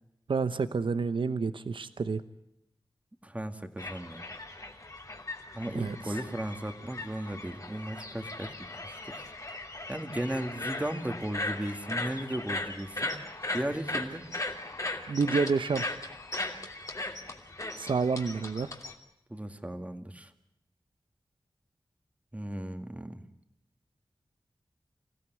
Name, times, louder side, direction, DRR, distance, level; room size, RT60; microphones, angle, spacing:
voice 1, 0.3-2.2 5.7-6.2 15.1-15.9 17.7-18.7, right 4 dB, 85° right, 12 dB, 0.9 m, -29 dB
voice 2, 3.2-4.2 5.5-8.5 8.8-9.3 9.9-13.1 13.5-14.2 19.3-20.3 22.3-23.2, right 1 dB, 15° right, 7 dB, 2.0 m, -36 dB
sound 1, 3.8-18.9, left 2 dB, 40° left, 2.8 m, -38 dB
26.5 x 16.5 x 9.2 m, 0.83 s
wide cardioid pair, 90°, 8 cm